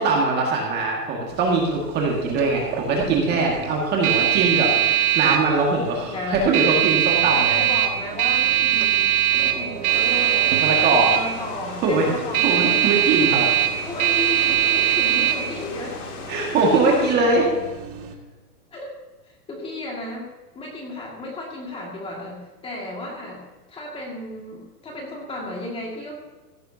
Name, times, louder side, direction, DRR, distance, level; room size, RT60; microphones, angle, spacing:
voice 1, 0.0-7.6 10.6-11.2 11.8-12.1 12.4-13.5 16.3-17.5, right 3 dB, 20° right, -1 dB, 1.8 m, -21 dB
sound 1, 1.3-18.1, right 11 dB, 60° right, 1.9 m, -22 dB
voice 2, 6.1-6.5 7.5-10.6 11.1-13.0 13.9-16.0 16.8-17.4 18.7-19.0 19.2-20.3 20.5-26.1, left 2 dB, 10° left, -1 dB, 2.0 m, -34 dB
sound 2, 9.9-17.2, left 5 dB, 70° left, 3.0 m, -38 dB
15.5 x 11.0 x 2.7 m, 1.2 s
hypercardioid pair, 160°, 48 cm